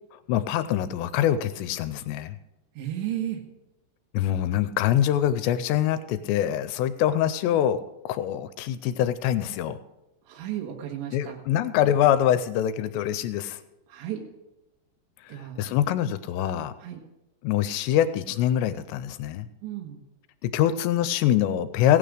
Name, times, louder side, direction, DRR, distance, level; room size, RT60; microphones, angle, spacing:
voice 1, 0.3-2.4 4.1-9.8 11.1-13.6 15.2-16.7 17.4-19.5 20.4-22.0, left 11 dB, 85° left, 12 dB, 2.8 m, -24 dB
voice 2, 2.8-3.4 10.3-11.4 13.9-14.2 15.3-15.6 16.8-17.0 19.6-20.0, right 11 dB, 85° right, 0 dB, 3.5 m, -33 dB
17.0 x 9.6 x 5.0 m, 0.95 s
omnidirectional pair, 5.0 m